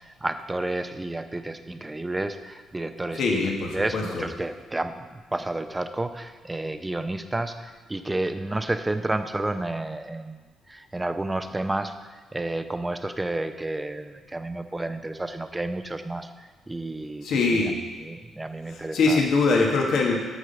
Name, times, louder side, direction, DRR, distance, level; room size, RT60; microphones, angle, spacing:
voice 1, 0.0-3.4 3.7-10.4 10.7-11.9 12.3-17.6 18.0-19.2 19.5-19.6, right 2 dB, 15° right, 8 dB, 0.7 m, -31 dB
voice 2, 3.1-4.2 17.2-17.8 18.7-20.1, left 3 dB, 70° left, 0 dB, 1.5 m, -23 dB
7.9 x 5.6 x 6.6 m, 1.4 s
cardioid pair, 90°, 0 cm